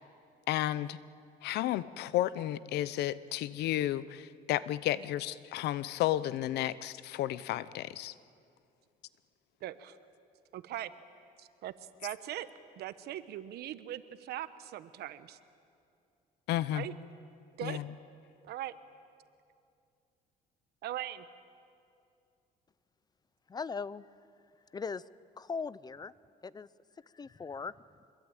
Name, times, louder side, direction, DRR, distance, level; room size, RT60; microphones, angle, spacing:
voice 1, 0.5-1.0 1.4-8.1 16.5-16.8 17.6-17.9, left 13 dB, 80° left, 17 dB, 0.8 m, -32 dB
voice 2, 9.6-10.0 10.5-10.9 11.4-11.7 12.0-12.5 12.8-15.4 16.7-16.9 17.6-17.8 18.4-18.7 20.8-21.3, right 13 dB, 70° right, 13 dB, 1.2 m, -40 dB
voice 3, 23.5-24.1 24.7-25.0 25.4-26.1 26.4-26.7 27.1-27.7, left 5 dB, 25° left, 19 dB, 0.5 m, -39 dB
25.5 x 21.5 x 9.0 m, 2.5 s
cardioid pair, 110°, 17 cm